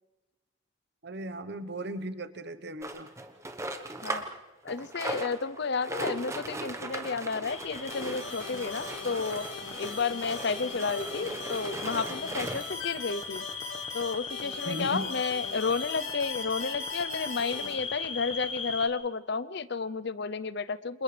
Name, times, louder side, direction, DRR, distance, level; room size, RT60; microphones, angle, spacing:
voice 1, 1.0-3.1 14.6-15.1, right 1 dB, 50° right, 11 dB, 1.1 m, -37 dB
sound 1, 2.8-4.4 4.7-12.8 13.5-13.6 13.8-13.9 14.4-14.5, right 2 dB, 15° right, 1.1 m, -38 dB
voice 2, 4.6-9.5 9.8-13.5 13.9-21.0, left 4 dB, 55° left, 15 dB, 0.6 m, -32 dB
sound 2, 7.5-18.9, left 5 dB, 25° left, 1.4 m, -39 dB
sound 3, 7.9-17.7, left 3 dB, 85° left, 5.3 m, -42 dB
29.0 x 27.0 x 3.4 m, 1.1 s
head